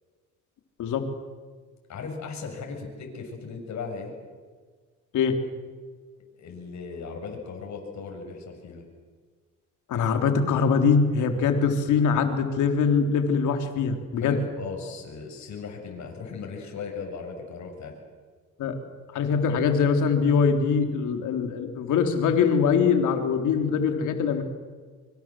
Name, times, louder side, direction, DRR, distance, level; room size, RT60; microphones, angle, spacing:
voice 1, 1.9-4.1 6.4-8.8 14.2-17.9, left 5 dB, 65° left, 2 dB, 7.7 m, -37 dB
voice 2, 9.9-14.4 18.6-18.8 19.1-24.4, left 6 dB, 80° left, 5 dB, 3.6 m, -23 dB
25.0 x 25.0 x 7.8 m, 1.5 s
cardioid pair, 90°, 30 cm